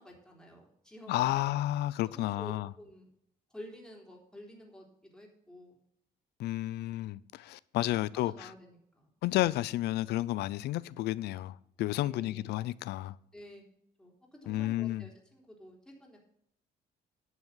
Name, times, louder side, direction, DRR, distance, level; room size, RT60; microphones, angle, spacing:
voice 1, 0.0-1.5 2.1-3.1 3.5-4.9 5.1-5.8 7.8-9.1 12.0-12.6 13.3-13.6 14.0-16.2, equal, 5° left, 3.8 m, -50 dB
voice 2, 1.1-2.7 6.4-8.5 9.2-13.1 14.5-15.1, left 15 dB, 75° left, 0.5 m, -31 dB
10.5 x 6.4 x 7.1 m
cardioid pair, 110°, 17 cm